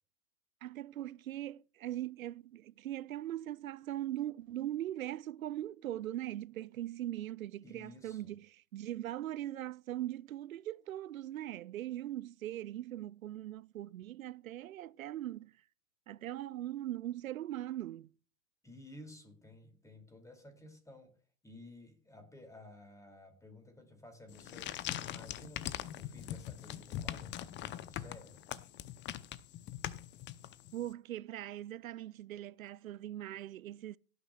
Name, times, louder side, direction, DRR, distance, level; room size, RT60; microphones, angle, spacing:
voice 1, 0.6-15.5 16.1-18.1 30.7-34.0, right 13 dB, 80° right, 0.5 m, -40 dB
voice 2, 7.6-8.3 18.6-21.2 21.4-28.4, left 1 dB, 10° left, 2.5 m, -54 dB
sound 1, 24.3-30.9, left 12 dB, 25° left, 0.7 m, -42 dB
17.5 x 9.5 x 2.3 m
hypercardioid pair, 95°, 41 cm